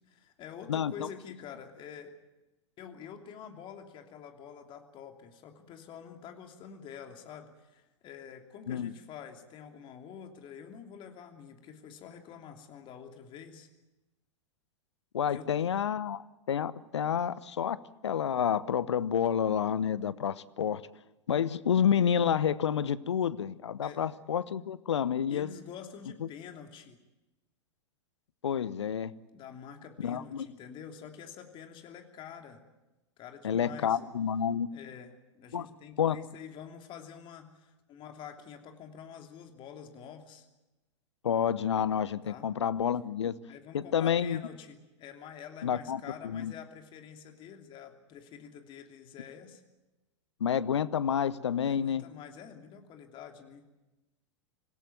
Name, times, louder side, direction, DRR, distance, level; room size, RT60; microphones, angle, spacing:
voice 1, 0.1-2.1 2.8-13.7 15.3-15.6 23.8-24.1 25.3-27.0 29.3-32.7 33.2-34.0 34.7-40.5 42.2-42.5 43.5-49.6 51.6-53.7, left 8 dB, 35° left, 4 dB, 3.0 m, -47 dB
voice 2, 0.7-1.1 8.7-8.9 15.1-20.8 21.3-25.5 26.2-26.3 28.4-29.1 30.0-30.5 33.4-34.7 35.5-35.7 36.0-36.2 41.2-43.4 43.7-44.4 45.6-46.5 50.4-52.0, left 8 dB, 70° left, 17 dB, 1.0 m, -29 dB
26.5 x 17.0 x 9.3 m, 1.0 s
figure-of-eight pair, 95°, 15 cm